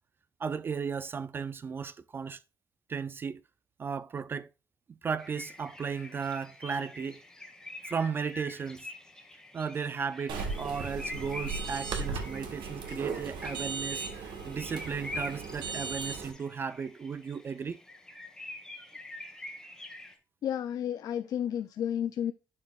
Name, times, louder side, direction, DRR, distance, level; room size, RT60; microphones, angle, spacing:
voice 1, 0.4-2.4 2.9-3.4 3.8-4.5 4.9-7.2 7.8-8.9 9.5-17.8, right 6 dB, 25° right, 0.3 m, -35 dB
sound 1, 5.2-20.2, left 2 dB, 5° left, 1.3 m, -45 dB
sound 2, 10.3-16.3, right 5 dB, 75° right, 1.5 m, -37 dB
voice 2, 20.4-22.3, left 9 dB, 50° left, 0.4 m, -31 dB
10.5 x 5.1 x 2.4 m
cardioid pair, 175°, 8 cm